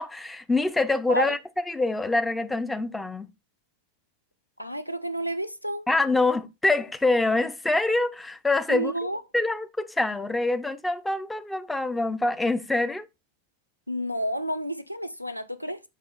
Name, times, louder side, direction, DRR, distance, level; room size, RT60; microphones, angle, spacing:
voice 1, 0.0-1.4 1.7-3.3 5.9-8.9 9.3-13.1, left 2 dB, 5° left, 0.5 m, -25 dB
voice 2, 4.6-5.8 8.7-9.2 13.9-15.8, right 1 dB, 90° left, 0.5 m, -30 dB
5.4 x 5.0 x 3.8 m
figure-of-eight pair, 90°, 0 cm